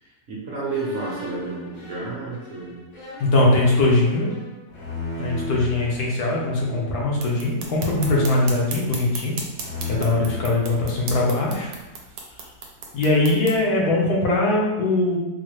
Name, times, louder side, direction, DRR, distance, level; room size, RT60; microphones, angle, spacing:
voice 1, 0.0-2.8, right 3 dB, 55° right, -5 dB, 1.0 m, -31 dB
sound 1, 0.7-6.0 6.6-7.1 7.8-9.2 9.5-11.5, left 2 dB, 45° left, 0.6 m, -36 dB
voice 2, 3.2-4.3 5.2-9.4 9.9-11.7 12.9-15.2, left 2 dB, 75° left, -3 dB, 1.3 m, -21 dB
sound 2, 7.2-13.6, right 4 dB, 75° right, 1.1 m, -37 dB
4.0 x 2.0 x 3.0 m, 1.1 s
omnidirectional pair, 1.7 m